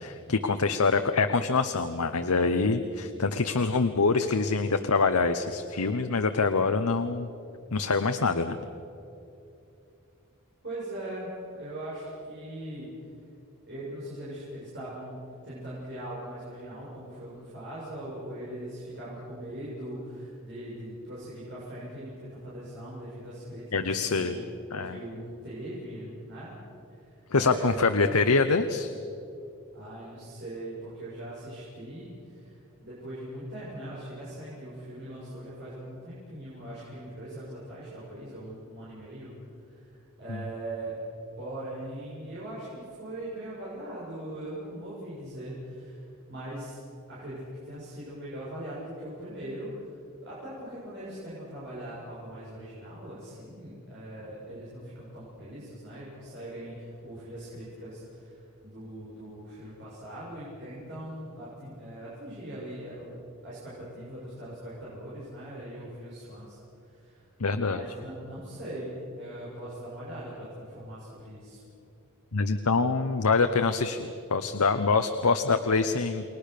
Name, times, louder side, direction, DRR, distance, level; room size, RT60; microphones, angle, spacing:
voice 1, 0.0-7.3 7.7-8.6 23.7-24.4 24.7-25.0 27.3-28.9 40.3-40.4 67.4-67.8 72.3-76.2, left 4 dB, 90° left, 8 dB, 1.0 m, -25 dB
voice 2, 10.6-12.9 13.7-15.2 15.4-24.4 24.8-26.5 26.9-27.9 29.7-39.3 39.7-41.0 41.4-46.0 46.3-46.8 47.1-58.4 58.6-67.2 67.6-71.6, right 1 dB, 50° right, -9 dB, 7.3 m, -40 dB
29.5 x 21.5 x 6.8 m, 2.8 s
head